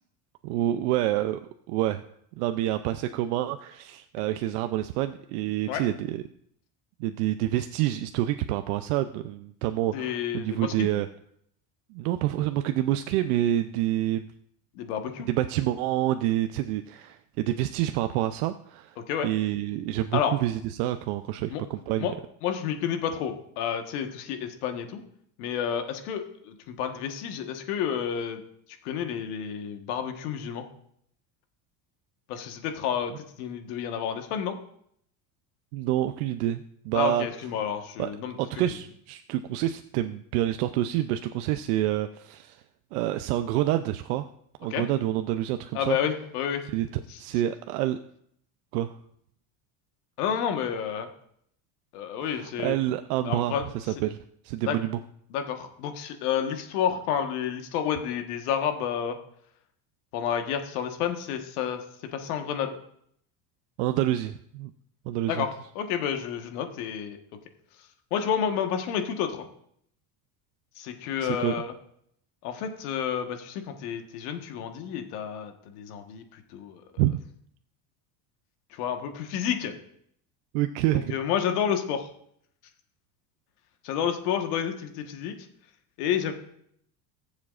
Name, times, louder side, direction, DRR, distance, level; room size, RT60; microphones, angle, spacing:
voice 1, 0.4-1.4 1.7-2.0 2.4-6.2 7.0-11.1 11.9-14.3 15.3-19.0 19.2-22.1 35.7-37.3 38.0-38.1 38.4-42.6 42.9-44.3 44.6-46.0 46.7-46.9 47.2-48.0 48.7-48.9 52.2-54.2 54.4-55.0 63.8-64.7 65.1-65.4 71.2-71.5 77.0-77.2 80.5-81.2, right 13 dB, 85° right, 8 dB, 0.6 m, -27 dB
voice 2, 9.9-10.9 14.7-15.3 19.1-19.3 20.1-20.4 21.5-21.6 22.0-22.1 22.4-25.0 25.4-28.4 28.8-30.6 32.3-34.6 36.9-38.7 44.7-44.9 45.7-46.6 47.1-47.2 50.2-51.1 51.9-52.8 53.2-53.6 54.6-54.8 55.3-59.2 60.1-61.8 62.1-62.8 65.3-65.5 65.7-67.2 68.1-69.5 70.8-71.7 72.4-76.8 78.7-79.7 80.9-82.1 83.8-85.3 86.0-86.3, left 8 dB, 85° left, 6 dB, 1.5 m, -30 dB
20.0 x 7.3 x 2.5 m, 0.68 s
supercardioid pair, 115°, 44 cm